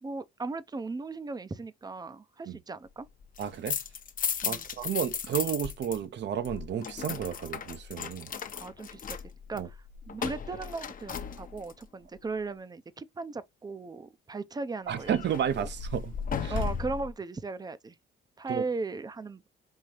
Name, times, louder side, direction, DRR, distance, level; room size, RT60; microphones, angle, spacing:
voice 1, 0.0-3.1 4.4-4.7 8.3-9.2 9.5-15.2 15.6-15.7 16.5-18.0 18.4-19.5, right 3 dB, 20° right, 0.6 m, -37 dB
sound 1, 3.2-6.0 6.2-11.8 14.9-17.1, left 7 dB, 45° left, 0.8 m, -36 dB
voice 2, 3.4-3.8 4.4-8.3 9.5-9.7 14.9-16.1 16.4-16.5 18.5-18.6, right 9 dB, 60° right, 0.8 m, -32 dB
5.5 x 2.7 x 3.1 m
cardioid pair, 90°, 20 cm